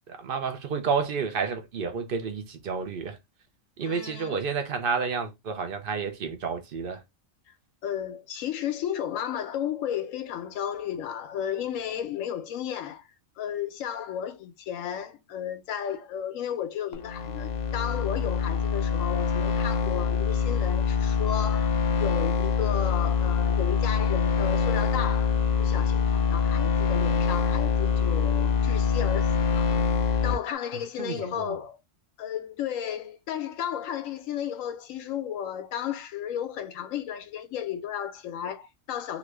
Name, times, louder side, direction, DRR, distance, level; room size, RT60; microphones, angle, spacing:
voice 1, 0.1-3.2 3.8-7.0 31.0-31.6, right 5 dB, 55° right, 0.7 m, -30 dB
voice 2, 3.8-4.4 7.8-13.1 13.4-29.7 30.2-31.8 32.2-39.2, left 9 dB, 85° left, 1.0 m, -33 dB
sound 1, 16.9-30.3, left 6 dB, 55° left, 0.5 m, -25 dB
3.0 x 2.5 x 3.2 m
omnidirectional pair, 1.3 m